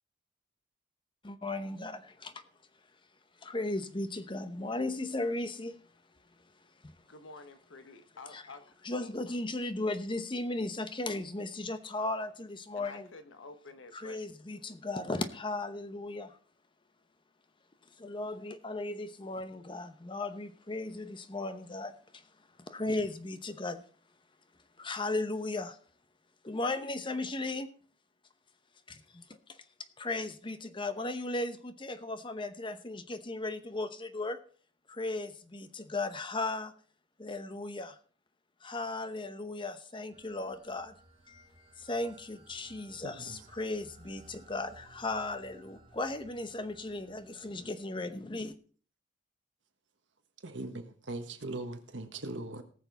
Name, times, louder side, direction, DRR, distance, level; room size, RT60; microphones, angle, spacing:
voice 1, 1.2-2.4 3.4-5.8 6.8-7.0 8.3-8.4 8.8-13.1 13.9-16.4 18.0-22.3 22.7-23.8 24.8-25.8 26.4-27.7 28.9-29.6 30.0-34.4 34.9-36.7 37.2-38.0 38.6-40.9 41.3-41.5 41.8-48.6, left 2 dB, 25° left, 0.9 m, -36 dB
voice 2, 7.1-8.8 12.7-14.2, left 3 dB, 85° left, 1.1 m, -50 dB
sound 1, 40.1-47.7, right 2 dB, 25° right, 2.2 m, -59 dB
voice 3, 43.0-43.4 50.4-52.6, right 2 dB, 70° right, 1.5 m, -40 dB
18.5 x 6.8 x 4.1 m
head